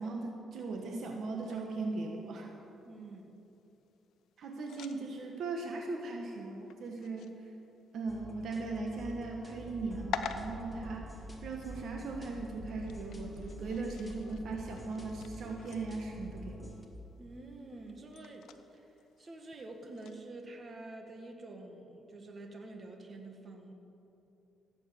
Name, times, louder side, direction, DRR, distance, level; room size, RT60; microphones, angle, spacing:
voice 1, 0.0-2.5 4.4-7.5 7.9-16.8, right 3 dB, 65° right, 1 dB, 1.3 m, -39 dB
sound 1, 1.4-20.3, left 7 dB, 80° left, 0.8 m, -49 dB
voice 2, 2.8-3.3 17.2-23.7, right 2 dB, 40° right, 3 dB, 1.8 m, -48 dB
sound 2, 8.1-16.9, equal, 10° left, 2.1 m, -47 dB
16.0 x 8.5 x 6.9 m, 2.9 s
cardioid pair, 90°, 0 cm